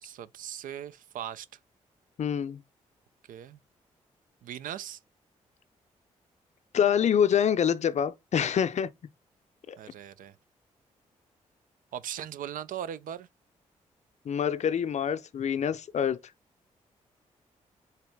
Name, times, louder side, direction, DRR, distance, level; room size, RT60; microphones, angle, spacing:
voice 1, 0.0-1.5 3.3-3.6 4.4-5.0 9.8-10.3 11.9-13.3, right 10 dB, 65° right, 0.4 m, -39 dB
voice 2, 2.2-2.6 6.7-8.9 9.7-9.8 14.3-16.2, left 8 dB, 50° left, 0.5 m, -26 dB
3.9 x 2.8 x 3.4 m
hypercardioid pair, 45°, 15 cm